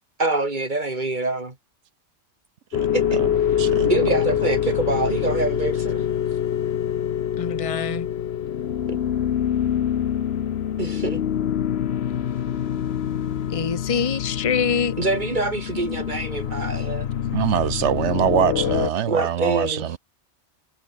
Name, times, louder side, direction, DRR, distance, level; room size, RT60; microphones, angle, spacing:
voice 1, 0.2-1.5 2.9-3.2 3.8-6.0 8.9-9.0 10.8-11.2 15.0-17.1 19.1-19.9, right 2 dB, 40° right, 3.1 m, -25 dB
sound 1, 2.7-18.9, left 9 dB, 65° left, 1.0 m, -25 dB
voice 2, 3.6-3.9 17.3-20.0, right 10 dB, 75° right, 1.1 m, -23 dB
voice 3, 7.4-8.1 13.5-15.0, left 6 dB, 30° left, 1.0 m, -24 dB
omnidirectional pair, 1.2 m